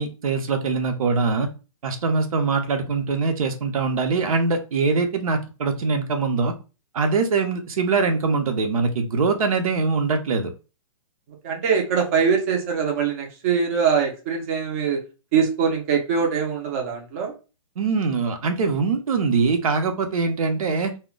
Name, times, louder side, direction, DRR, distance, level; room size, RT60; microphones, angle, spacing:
voice 1, 0.0-1.5 1.8-6.5 6.9-10.5 17.8-20.9, right 4 dB, 85° right, 5 dB, 0.7 m, -23 dB
voice 2, 11.4-15.0 15.3-17.3, right 6 dB, 25° right, 1 dB, 0.5 m, -22 dB
2.1 x 2.1 x 3.7 m, 0.31 s
hypercardioid pair, 170°, 18 cm